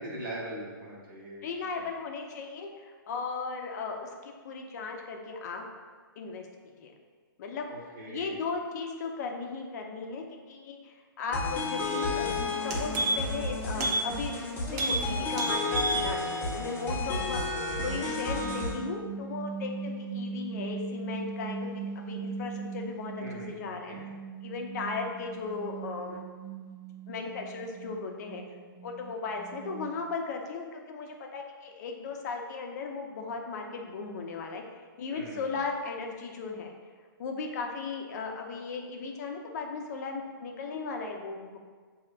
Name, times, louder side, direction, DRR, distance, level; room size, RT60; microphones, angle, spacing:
voice 1, 0.0-1.5 1.8-1.9 7.7-8.4 23.2-23.5 23.9-24.0 35.1-35.4, right 1 dB, 65° right, -4 dB, 1.4 m, -41 dB
voice 2, 1.4-5.7 6.2-6.9 7.4-7.7 8.1-12.3 12.6-14.3 14.7-24.0 24.4-26.2 27.1-28.4 28.8-34.6 35.0-36.7 37.2-41.6, left 4 dB, 50° left, 2 dB, 0.6 m, -36 dB
sound 1, 11.3-18.7, left 2 dB, 15° left, 0.8 m, -32 dB
sound 2, 12.1-12.2 12.5-13.4 13.8-14.0 14.3-14.4 14.7-15.0 15.3-16.0 16.4-16.5, right 2 dB, 45° right, 0.9 m, -29 dB
sound 3, 18.3-23.5 23.9-30.1, right 5 dB, 25° right, 0.5 m, -40 dB
6.1 x 2.8 x 2.4 m, 1.5 s
hypercardioid pair, 140°, 12 cm